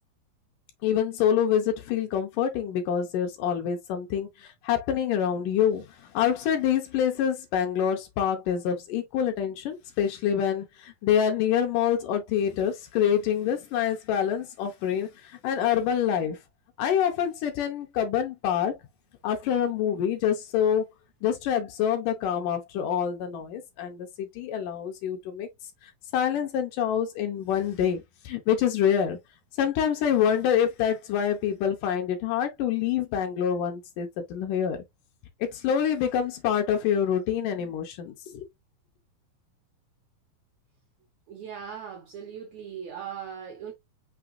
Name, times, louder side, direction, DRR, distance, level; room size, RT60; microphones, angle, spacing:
voice 1, 0.8-16.4 16.8-18.8 19.2-20.9 21.2-25.5 25.8-29.2 29.6-34.8 35.4-38.5, left 9 dB, 75° left, 2.1 m, -26 dB
voice 2, 41.3-43.7, right 8 dB, 70° right, 1.6 m, -39 dB
6.0 x 3.2 x 2.4 m
omnidirectional pair, 4.1 m